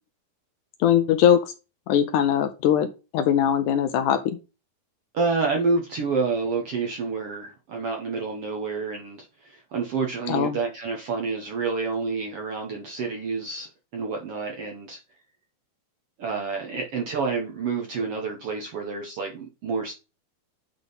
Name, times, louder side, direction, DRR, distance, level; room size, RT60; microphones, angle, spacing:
voice 1, 0.8-1.5 1.9-2.9 3.1-4.4 10.3-10.6, left 9 dB, 80° left, 1.8 m, -21 dB
voice 2, 5.1-15.0 16.2-20.0, right 4 dB, 85° right, 1.3 m, -28 dB
10.0 x 3.7 x 4.0 m
omnidirectional pair, 4.3 m